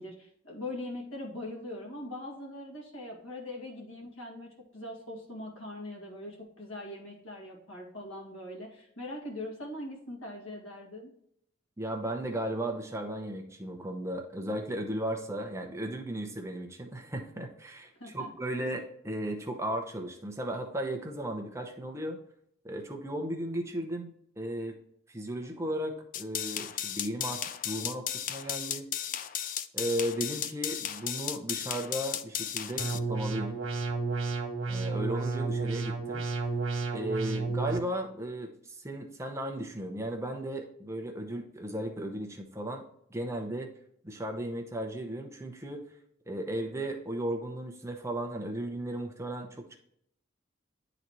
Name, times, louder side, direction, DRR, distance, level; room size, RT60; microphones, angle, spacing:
voice 1, 0.0-11.1 18.0-18.3, left 1 dB, 90° left, -1 dB, 2.0 m, -41 dB
voice 2, 11.8-22.2 22.6-24.8 25.1-28.9 29.7-33.6 34.7-36.2 36.9-42.8 43.1-43.7 44.0-45.8 46.3-49.8, right 1 dB, 15° right, 3 dB, 0.7 m, -35 dB
sound 1, 26.1-33.0, left 10 dB, 40° left, 0.3 m, -35 dB
sound 2, 32.8-37.8, right 4 dB, 85° right, 1.3 m, -32 dB
9.8 x 4.0 x 3.0 m, 0.70 s
head